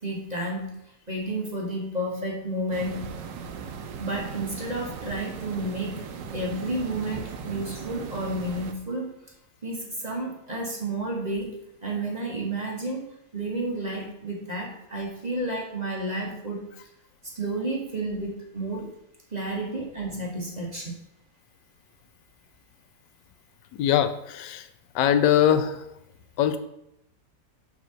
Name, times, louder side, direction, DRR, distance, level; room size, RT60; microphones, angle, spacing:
voice 1, 0.0-0.8 1.1-3.1 4.0-6.1 6.3-9.1 9.6-11.5 11.8-13.1 13.3-16.7 17.2-18.9 19.3-21.0, right 1 dB, 25° right, -1 dB, 1.2 m, -31 dB
sound 1, 2.7-8.7, right 6 dB, 85° right, 1.4 m, -38 dB
voice 2, 23.7-24.7 24.9-25.9 26.4-26.6, left 10 dB, 85° left, 10 dB, 1.3 m, -22 dB
7.2 x 3.7 x 6.2 m, 0.80 s
omnidirectional pair, 1.8 m